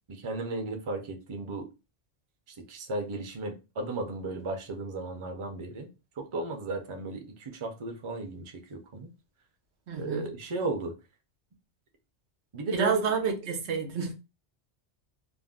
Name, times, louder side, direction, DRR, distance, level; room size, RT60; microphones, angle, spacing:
voice 1, 0.1-1.7 2.7-5.9 6.2-9.1 10.0-11.0 12.5-12.9, right 2 dB, 35° right, 0.5 m, -35 dB
voice 2, 9.9-10.3 12.7-14.1, right 6 dB, 90° right, 1.0 m, -29 dB
2.5 x 2.1 x 3.5 m
omnidirectional pair, 1.1 m